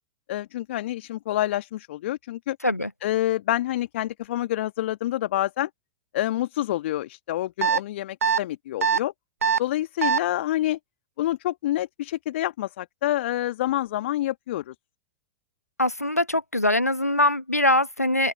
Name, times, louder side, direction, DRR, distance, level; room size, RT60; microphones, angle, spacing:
voice 1, 0.3-2.6 3.0-5.7 6.1-9.1 9.6-10.8 11.2-14.7, left 14 dB, 55° left, 1.6 m, -27 dB
sound 1, 7.6-7.8 8.2-8.4 8.8-9.0 9.4-9.6 10.0-10.2, right 6 dB, 70° right, 0.7 m, -21 dB
voice 2, 15.8-18.3, left 1 dB, 90° left, 1.0 m, -22 dB
open air
figure-of-eight pair, 100°, 8 cm